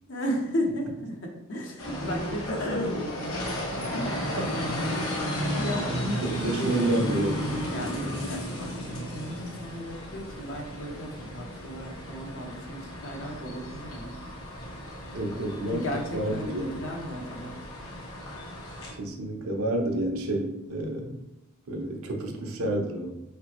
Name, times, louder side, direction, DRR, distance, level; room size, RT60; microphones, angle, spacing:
voice 1, 0.1-4.2 5.5-6.8 7.7-14.2 15.7-17.6, equal, 60° left, 1 dB, 0.9 m, -35 dB
sound 1, 1.8-18.9, equal, 75° left, 1.2 m, -34 dB
voice 2, 4.4-4.8 6.2-7.4 15.1-16.8 18.9-21.2 21.7-23.1, right 1 dB, 75° right, 2 dB, 0.8 m, -29 dB
5.0 x 3.3 x 3.0 m, 0.94 s
head